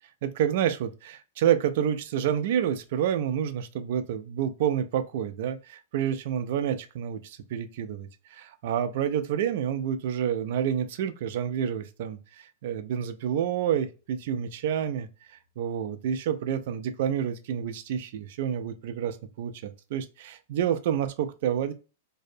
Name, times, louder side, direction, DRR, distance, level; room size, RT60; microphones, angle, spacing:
voice 1, 0.2-15.1 15.6-21.7, right 9 dB, 60° right, 0.3 m, -29 dB
2.6 x 2.0 x 2.5 m
hypercardioid pair, 145°, 0 cm